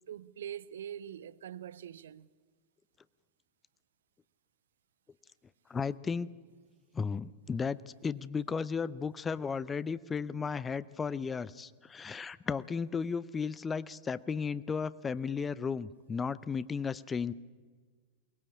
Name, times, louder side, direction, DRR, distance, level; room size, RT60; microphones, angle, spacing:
voice 1, 0.1-2.3, right 10 dB, 60° right, 0.6 m, -43 dB
voice 2, 5.7-6.3 6.9-17.3, left 5 dB, 15° left, 0.6 m, -34 dB
22.5 x 19.5 x 8.6 m
figure-of-eight pair, 90°, 0 cm